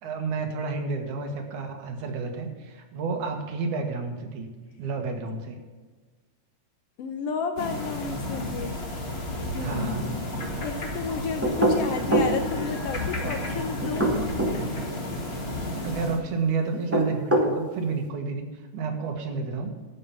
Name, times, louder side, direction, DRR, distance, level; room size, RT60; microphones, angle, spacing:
voice 1, 0.0-4.5 4.8-5.6 9.6-10.1 13.2-13.3 15.8-19.7, right 4 dB, 80° right, 4 dB, 2.9 m, -30 dB
voice 2, 7.0-8.7 9.5-14.1, left 5 dB, 70° left, 6 dB, 1.5 m, -32 dB
sound 1, 7.6-16.2, left 1 dB, 30° left, 1.3 m, -32 dB
sound 2, 11.4-12.4 13.8-14.6 16.7-17.5, right 1 dB, 10° right, 0.7 m, -22 dB
13.0 x 5.6 x 7.3 m, 1.4 s
omnidirectional pair, 3.4 m